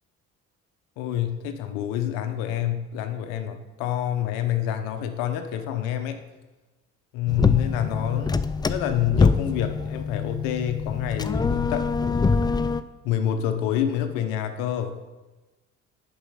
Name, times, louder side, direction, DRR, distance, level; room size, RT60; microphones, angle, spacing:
voice 1, 1.0-6.2 7.1-12.0 13.0-15.0, left 10 dB, 90° left, 8 dB, 0.8 m, -27 dB
sound 1, 7.3-12.8, left 4 dB, 15° left, 0.3 m, -24 dB
7.1 x 5.6 x 5.6 m, 1.1 s
supercardioid pair, 70°, 32 cm